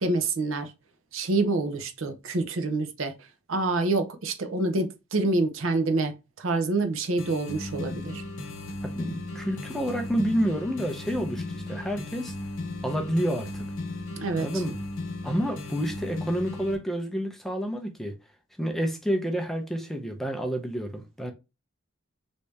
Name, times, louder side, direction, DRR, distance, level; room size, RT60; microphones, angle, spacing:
voice 1, 0.0-0.7 1.1-3.1 3.5-8.2 14.2-14.5, right 2 dB, 70° right, 0.6 m, -27 dB
sound 1, 7.2-16.8, left 2 dB, 70° left, 0.8 m, -36 dB
voice 2, 8.8-12.3 12.8-13.7 14.4-14.8 15.2-18.2 18.6-21.3, equal, ahead, 0.5 m, -29 dB
3.3 x 2.7 x 3.2 m
head